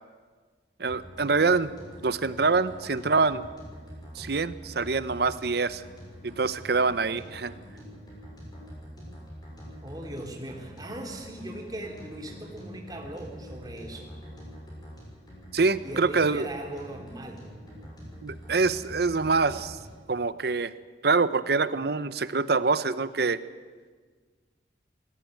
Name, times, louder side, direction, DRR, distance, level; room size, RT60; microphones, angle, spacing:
voice 1, 0.8-1.7 2.0-3.4 4.2-5.8 6.2-7.5 15.5-16.5 18.2-19.8 20.1-20.7 21.0-23.4, right 4 dB, 60° right, 15 dB, 0.8 m, -25 dB
sound 1, 0.9-20.1, equal, 25° left, 6.7 m, -45 dB
voice 2, 9.8-14.1 15.8-17.4, right 1 dB, 20° right, 1 dB, 3.2 m, -39 dB
19.0 x 16.0 x 9.2 m, 1.5 s
head